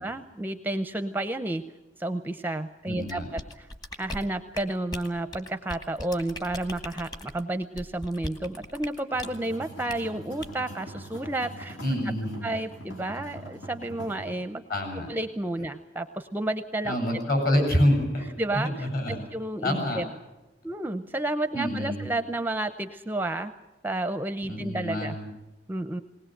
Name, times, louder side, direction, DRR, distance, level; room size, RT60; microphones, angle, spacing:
voice 1, 0.0-1.6 2.0-3.7 4.0-11.8 12.4-14.6 15.1-17.0 18.4-18.9 19.3-20.1 20.6-23.5 23.8-25.2 25.7-26.0, right 1 dB, 10° right, 9 dB, 0.6 m, -31 dB
voice 2, 2.9-3.3 11.8-12.5 14.7-15.1 16.8-18.3 18.5-19.2 19.6-20.0 21.5-22.1 24.5-25.3, left 1 dB, 50° left, 2 dB, 7.6 m, -26 dB
sound 1, 3.1-9.4 9.9-10.1 10.4-10.6, left 1 dB, 20° left, 1.3 m, -39 dB
sound 2, 9.1-14.3, equal, 80° left, 3.5 m, -43 dB
19.5 x 19.5 x 7.8 m, 1.1 s
head